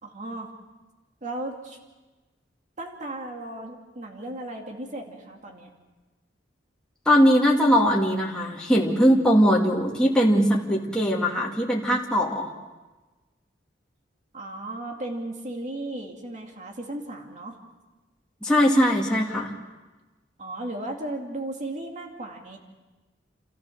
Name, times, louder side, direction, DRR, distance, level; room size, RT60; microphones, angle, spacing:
voice 1, 0.0-0.5 1.2-1.8 2.8-5.7 14.3-17.6 20.4-22.6, right 1 dB, 40° right, 2 dB, 2.5 m, -35 dB
voice 2, 7.1-12.5 18.4-19.5, equal, 5° left, -4 dB, 2.2 m, -20 dB
30.0 x 14.0 x 6.4 m, 1.2 s
head